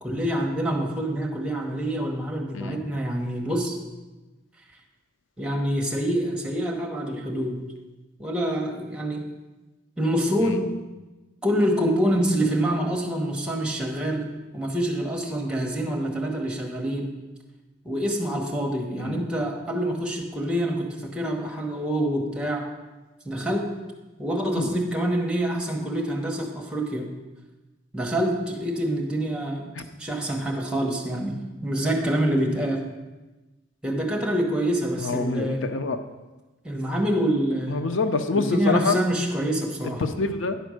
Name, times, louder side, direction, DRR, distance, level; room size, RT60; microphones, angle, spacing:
voice 1, 0.0-3.8 5.4-7.6 8.2-9.2 10.0-10.7 11.4-17.2 17.8-22.6 23.2-23.7 24.2-27.1 27.9-29.6 30.0-32.8 33.8-35.7 36.6-37.8 38.3-40.0, right 1 dB, 5° right, 0 dB, 1.1 m, -26 dB
voice 2, 35.0-36.0 37.7-39.0 40.0-40.6, left 4 dB, 80° left, 8 dB, 0.6 m, -26 dB
10.0 x 4.4 x 6.4 m, 1.1 s
head